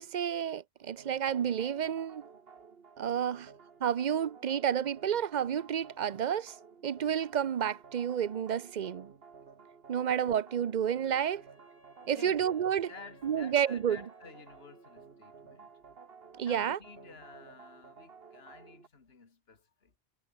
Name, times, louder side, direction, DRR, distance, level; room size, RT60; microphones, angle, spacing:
voice 1, 0.0-2.2 3.0-3.5 3.8-6.5 6.8-9.1 9.9-11.5 12.1-12.9 13.2-14.0 16.4-16.8, right 9 dB, 50° right, 0.7 m, -30 dB
sound 1, 1.0-18.9, right 5 dB, 65° right, 1.6 m, -54 dB
Wind instrument woodwind instrument, 11.3-15.4, left 1 dB, 50° left, 6.2 m, -62 dB
voice 2, 12.0-12.4 12.9-15.7 16.4-19.9, left 4 dB, 70° left, 2.2 m, -52 dB
omnidirectional pair, 1.1 m